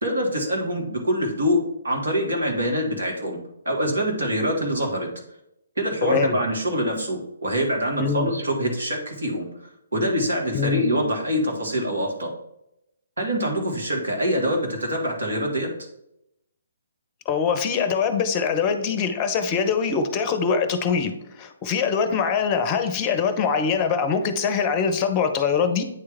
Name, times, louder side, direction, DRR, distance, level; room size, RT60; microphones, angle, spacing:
voice 1, 0.0-3.4 3.7-5.1 5.8-9.5 9.9-12.3 13.2-15.7, equal, 65° right, 0 dB, 1.8 m, -25 dB
voice 2, 6.0-6.4 8.0-8.3 10.5-10.8 17.3-25.8, left 6 dB, 25° left, 9 dB, 0.7 m, -23 dB
8.7 x 3.3 x 3.5 m, 0.80 s
figure-of-eight pair, 135°, 0 cm